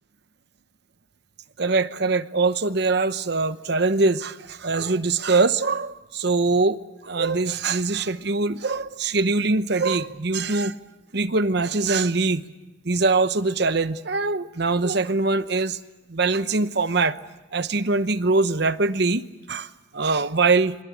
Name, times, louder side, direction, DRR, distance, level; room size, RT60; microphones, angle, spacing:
voice 1, 1.6-10.8 11.1-12.4 12.8-15.8 16.1-17.2 17.5-20.8, right 3 dB, 55° right, 12 dB, 0.9 m, -23 dB
26.5 x 23.0 x 8.4 m, 1.0 s
head